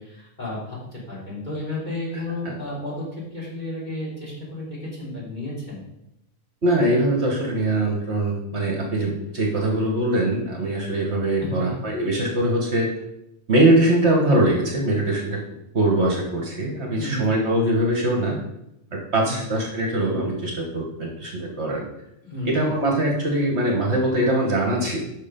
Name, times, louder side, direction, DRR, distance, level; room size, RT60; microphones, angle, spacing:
voice 1, 0.0-3.1 3.3-5.9 11.4-11.8 16.9-17.2 19.2-19.5 22.2-22.7, left 1 dB, 30° left, -8 dB, 3.6 m, -32 dB
voice 2, 6.6-12.9 13.5-15.4 15.7-18.4 18.9-21.9 22.4-25.0, right 1 dB, 55° right, -1 dB, 1.5 m, -22 dB
6.5 x 5.8 x 5.1 m, 0.83 s
omnidirectional pair, 1.4 m